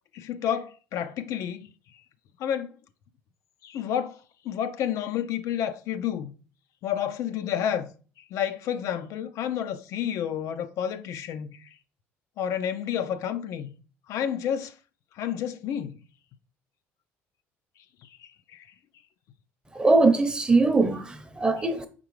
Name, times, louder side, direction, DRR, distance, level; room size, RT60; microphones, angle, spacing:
voice 1, 0.1-1.7 2.4-2.7 3.6-6.3 6.8-11.8 12.4-13.7 14.1-14.7 15.1-16.0 18.0-18.7, left 9 dB, 65° left, 0.4 m, -30 dB
voice 2, 19.7-21.9, right 3 dB, 15° right, 0.7 m, -21 dB
4.7 x 3.7 x 3.1 m
supercardioid pair, 80°, 6 cm